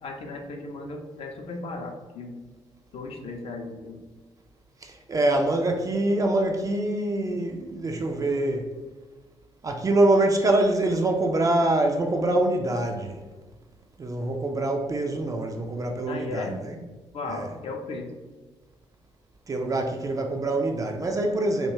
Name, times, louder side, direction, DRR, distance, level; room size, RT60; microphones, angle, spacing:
voice 1, 0.0-2.3 2.9-4.0 16.1-16.6 17.1-18.1, left 3 dB, 45° left, 0.5 m, -36 dB
voice 2, 4.8-8.7 9.6-13.2 14.0-16.8 17.3-17.5 19.5-21.7, right 2 dB, 25° right, 0.4 m, -25 dB
2.8 x 2.2 x 2.7 m
figure-of-eight pair, 40°, 14 cm